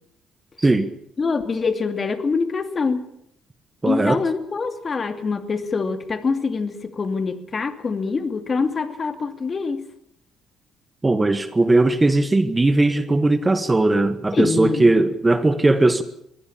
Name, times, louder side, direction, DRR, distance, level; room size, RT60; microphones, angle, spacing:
voice 1, 0.6-0.9 3.8-4.2 11.0-16.0, right 2 dB, 20° right, 1.4 m, -18 dB
voice 2, 1.2-3.1 3.9-9.8 14.3-14.9, left 4 dB, 35° left, 2.7 m, -24 dB
23.0 x 16.0 x 8.8 m
cardioid pair, 95°, 0 cm